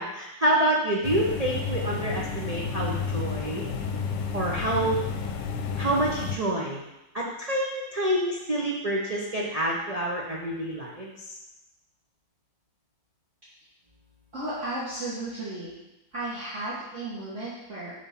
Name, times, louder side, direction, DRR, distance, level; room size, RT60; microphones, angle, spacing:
voice 1, 0.0-3.6 4.3-5.0 5.8-6.8 7.1-11.3, right 1 dB, 80° right, -3 dB, 0.3 m, -27 dB
sound 1, 1.0-6.4, left 5 dB, 70° left, 1.2 m, -31 dB
voice 2, 14.3-15.7 16.1-17.9, right 2 dB, 40° right, -9 dB, 1.6 m, -34 dB
7.2 x 3.6 x 5.7 m, 0.96 s
omnidirectional pair, 2.1 m